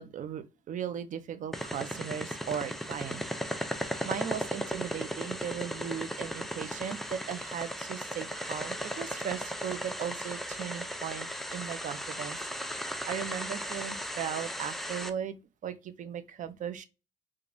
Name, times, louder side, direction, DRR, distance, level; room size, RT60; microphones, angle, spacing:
voice 1, 0.0-3.2 3.6-3.7 4.0-12.4 12.8-16.8, right 8 dB, 50° right, 0.6 m, -37 dB
sound 1, 1.5-15.1, equal, ahead, 0.5 m, -36 dB
4.7 x 2.4 x 2.6 m
cardioid pair, 95°, 17 cm